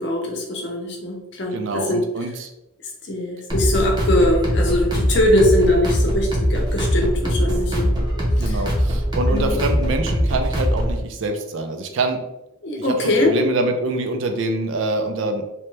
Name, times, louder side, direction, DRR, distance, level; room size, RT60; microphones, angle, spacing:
voice 1, 0.0-2.0 3.1-8.0 8.4-8.6 9.3-9.6 12.6-13.3, left 1 dB, 55° left, 1 dB, 0.7 m, -21 dB
voice 2, 1.5-2.5 8.4-12.2 12.8-15.5, right 2 dB, 70° right, 5 dB, 0.4 m, -25 dB
sound 1, 3.5-11.0, equal, 20° right, 0.6 m, -21 dB
2.8 x 2.1 x 3.2 m, 0.91 s
head